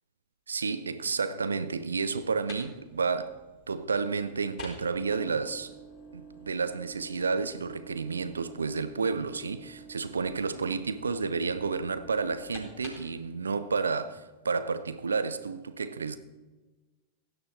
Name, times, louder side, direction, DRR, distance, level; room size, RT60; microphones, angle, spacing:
voice 1, 0.5-3.4 3.7-5.7 6.1-16.2, right 4 dB, 75° right, 0.7 m, -31 dB
sound 1, 2.1-13.2, right 1 dB, 30° left, 3.9 m, -49 dB
16.0 x 9.6 x 4.2 m
figure-of-eight pair, 90°, 0 cm